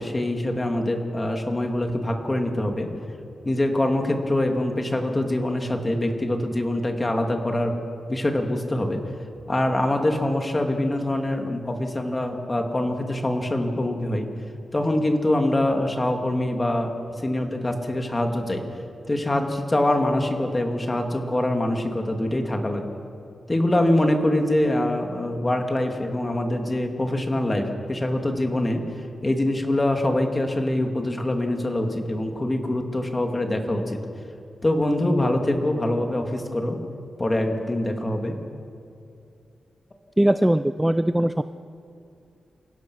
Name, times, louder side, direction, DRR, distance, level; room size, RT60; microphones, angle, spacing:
voice 1, 0.0-2.9 3.4-7.7 8.1-9.0 9.5-14.3 14.7-18.6 19.1-22.8 23.5-28.8 29.2-34.0 34.6-36.8 37.2-38.4, left 1 dB, 20° left, 3 dB, 2.3 m, -24 dB
voice 2, 40.2-41.4, right 1 dB, 10° right, 11 dB, 0.4 m, -20 dB
28.0 x 16.5 x 6.2 m, 2.5 s
wide cardioid pair, 115°, 0 cm